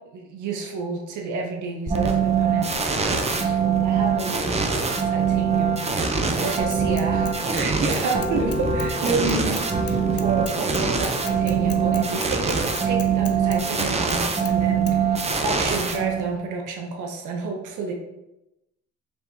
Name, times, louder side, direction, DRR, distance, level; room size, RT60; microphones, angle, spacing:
voice 1, 0.1-2.7 3.0-17.9, right 3 dB, 80° right, 1 dB, 0.7 m, -30 dB
sound 1, 1.9-16.5, right 6 dB, 20° right, 0.5 m, -23 dB
Bicycle / Mechanisms, 6.7-7.7 7.9-14.2 14.5-14.6 14.9-15.0, left 9 dB, 50° left, 0.5 m, -38 dB
4.7 x 3.3 x 2.7 m, 0.94 s
cardioid pair, 90°, 30 cm